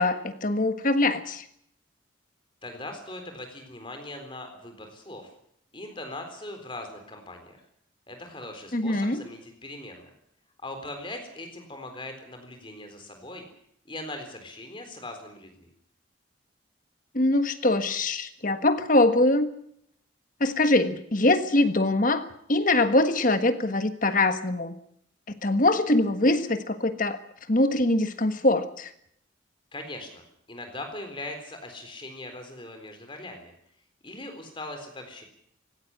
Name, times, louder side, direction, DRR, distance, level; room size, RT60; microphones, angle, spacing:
voice 1, 0.0-1.4 8.7-9.2 17.1-19.5 20.4-24.7 25.3-27.2 27.5-28.9, left 2 dB, 40° left, 9 dB, 1.5 m, -23 dB
voice 2, 2.6-5.3 5.7-7.6 8.1-10.1 10.6-13.5 13.9-15.7 29.7-33.5 34.0-35.2, left 2 dB, 25° left, 5 dB, 3.9 m, -40 dB
17.5 x 17.0 x 10.0 m, 0.70 s
head